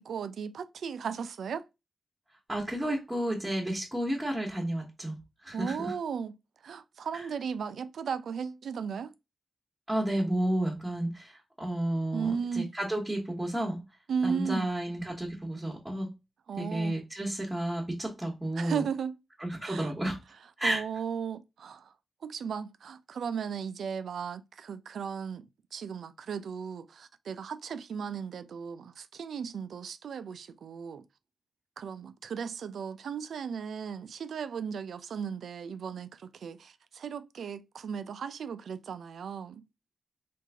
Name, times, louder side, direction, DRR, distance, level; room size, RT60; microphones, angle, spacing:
voice 1, 0.0-1.6 5.5-6.4 6.6-9.1 12.1-12.7 14.1-14.7 16.5-17.0 18.6-19.1 19.6-19.9 20.6-21.9 22.2-31.0 31.8-39.6, right 6 dB, 80° right, 0.3 m, -36 dB
voice 2, 2.5-5.1 5.4-5.9 9.9-11.3 11.6-13.8 14.2-16.1 16.6-18.8 19.4-20.2 20.6-20.8, right 1 dB, 15° right, 1.1 m, -31 dB
3.1 x 2.5 x 3.4 m
cardioid pair, 65°, 0 cm